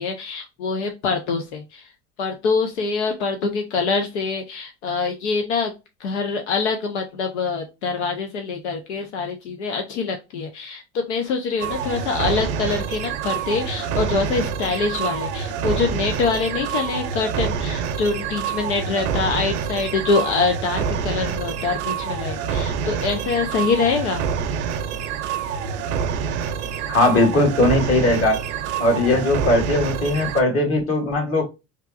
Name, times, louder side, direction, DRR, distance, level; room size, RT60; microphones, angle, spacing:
voice 1, 0.0-1.9 2.2-5.7 6.0-24.3, left 4 dB, 85° left, 0.7 m, -25 dB
sound 1, 11.6-30.4, right 7 dB, 85° right, 0.6 m, -27 dB
voice 2, 26.9-28.4 28.8-31.4, left 2 dB, 40° left, 1.8 m, -19 dB
3.3 x 3.0 x 2.4 m
hypercardioid pair, 80°, 33 cm